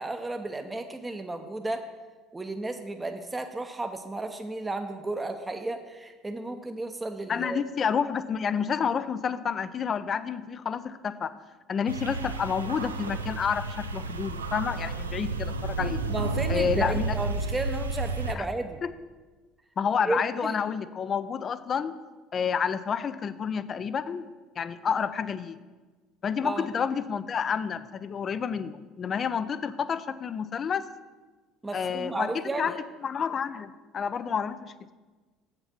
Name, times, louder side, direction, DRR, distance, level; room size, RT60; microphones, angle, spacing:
voice 1, 0.0-1.9 2.3-7.6 16.1-18.8 20.1-20.6 26.4-26.7 31.6-32.8, right 2 dB, 15° right, 6 dB, 0.7 m, -33 dB
voice 2, 7.3-11.3 11.7-16.0 16.5-17.2 18.3-18.5 18.8-18.9 19.8-21.9 22.3-24.3 24.6-25.6 26.2-30.8 31.7-32.8 33.0-34.9, left 7 dB, 40° left, 14 dB, 0.5 m, -29 dB
sound 1, 11.9-18.4, right 3 dB, 90° right, 0.4 m, -31 dB
7.9 x 6.7 x 5.9 m, 1.3 s
figure-of-eight pair, 60°, 0 cm